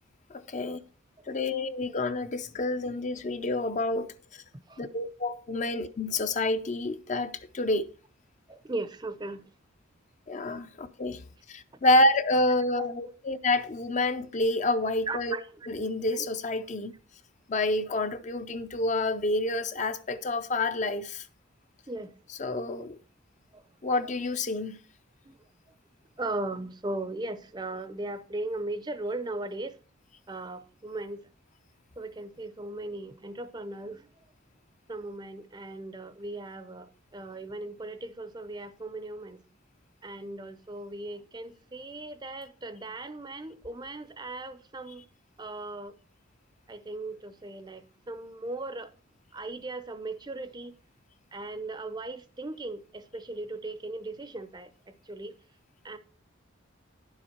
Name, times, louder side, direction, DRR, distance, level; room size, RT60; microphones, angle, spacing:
voice 1, 0.3-0.8 1.3-4.1 4.8-7.8 10.3-11.2 11.5-15.4 15.7-16.9 17.5-21.2 22.4-23.0 23.8-24.8, left 2 dB, 35° left, 0.5 m, -28 dB
voice 2, 8.5-9.5 12.8-13.1 15.1-15.7 16.1-16.3 21.9-22.1 23.5-23.6 24.0-24.1 25.3-25.4 26.2-29.8 30.3-31.3 32.0-34.1 34.9-39.4 40.0-45.0 45.4-46.0 46.7-48.9 49.3-50.7 51.3-55.3 55.8-56.0, right 2 dB, 20° right, 0.6 m, -38 dB
10.0 x 7.2 x 4.4 m
head